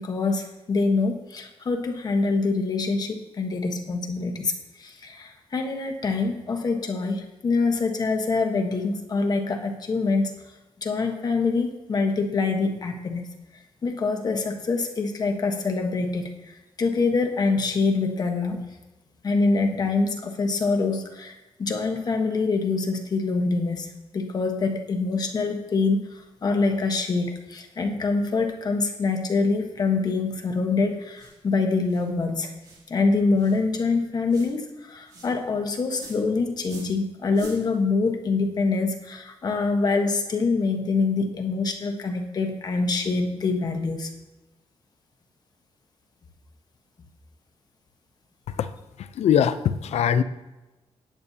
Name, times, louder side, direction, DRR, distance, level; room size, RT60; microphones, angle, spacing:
voice 1, 0.0-10.3 10.8-13.3 13.8-18.7 19.2-32.5 32.9-44.1, left 3 dB, 35° left, 4 dB, 1.2 m, -25 dB
sound 1, 31.1-31.4 31.9-32.1 32.6-32.9 33.4-33.6 34.3-34.5 35.1-35.3 35.9-36.2 36.6-37.0 37.3-37.6, right 3 dB, 40° right, 2.9 m, -44 dB
voice 2, 49.0-50.2, left 8 dB, 80° left, 13 dB, 0.6 m, -22 dB
17.5 x 8.7 x 2.8 m, 1.0 s
wide cardioid pair, 180°, 11 cm